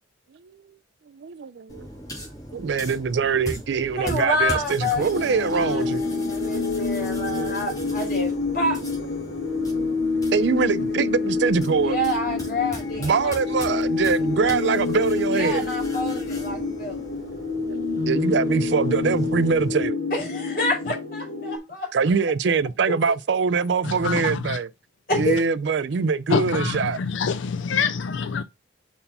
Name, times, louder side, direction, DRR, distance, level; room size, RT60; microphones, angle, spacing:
voice 1, 1.1-1.9 2.5-6.0 7.5-7.6 10.3-12.0 13.0-15.7 17.0-17.1 18.1-20.0 21.9-24.7 25.1-27.0, right 5 dB, 70° right, 0.4 m, -23 dB
sound 1, 1.7-19.9, equal, 20° left, 2.8 m, -40 dB
voice 2, 4.0-5.9 6.3-8.8 11.8-13.4 15.3-17.0 20.1-22.1 22.9-23.0 25.1-25.4, left 1 dB, 50° left, 3.5 m, -28 dB
sound 2, 5.0-21.6, left 4 dB, 70° left, 1.8 m, -27 dB
voice 3, 24.0-24.6 26.3-28.4, left 5 dB, 85° left, 0.4 m, -25 dB
5.4 x 4.6 x 5.3 m
head